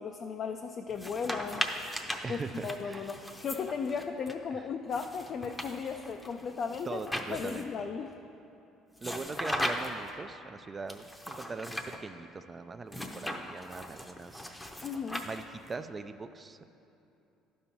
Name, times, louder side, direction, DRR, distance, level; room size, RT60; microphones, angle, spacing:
voice 1, 0.0-1.7 2.3-7.0 7.3-8.1 14.8-15.3, left 6 dB, 45° left, 5 dB, 0.4 m, -36 dB
sound 1, 0.9-4.3 4.9-7.8 9.0-10.1 10.9-12.0 12.9-15.7, left 1 dB, 10° left, 0.6 m, -38 dB
voice 2, 2.2-3.1 4.5-4.7 6.8-7.9 9.0-14.6 15.2-16.6, right 4 dB, 25° right, 10 dB, 0.3 m, -41 dB
11.5 x 5.4 x 4.4 m, 2.8 s
cardioid pair, 100°, 0 cm